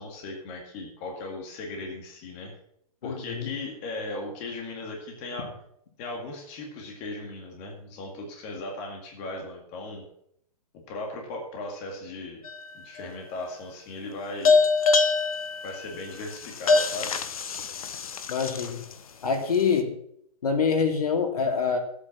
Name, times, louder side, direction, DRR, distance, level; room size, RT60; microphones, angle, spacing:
voice 1, 0.0-2.5 3.0-5.5 6.0-10.0 10.7-12.4 12.7-14.5 15.6-17.2, left 2 dB, 20° left, 1 dB, 2.0 m, -37 dB
voice 2, 3.0-3.5 18.3-18.8 19.2-19.9 20.4-21.8, left 5 dB, 90° left, 3 dB, 3.0 m, -25 dB
sound 1, 12.4-13.1 14.4-18.9, left 4 dB, 70° left, 1.2 m, -24 dB
12.0 x 8.5 x 6.1 m, 0.70 s
hypercardioid pair, 180°, 19 cm